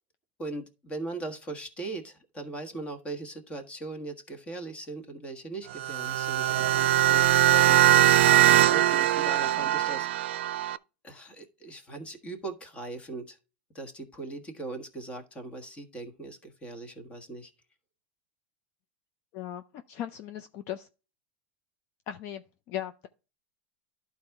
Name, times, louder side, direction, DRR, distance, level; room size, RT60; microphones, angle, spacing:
voice 1, 0.4-7.8 8.5-10.1 11.0-13.4 13.7-17.5, right 3 dB, 20° left, 1.4 m, -39 dB
sound 1, 5.7-10.8, right 13 dB, 85° right, 0.4 m, -21 dB
voice 2, 19.3-20.9 22.1-23.1, left 11 dB, 45° left, 0.5 m, -38 dB
11.5 x 4.2 x 3.5 m
supercardioid pair, 135°, 6 cm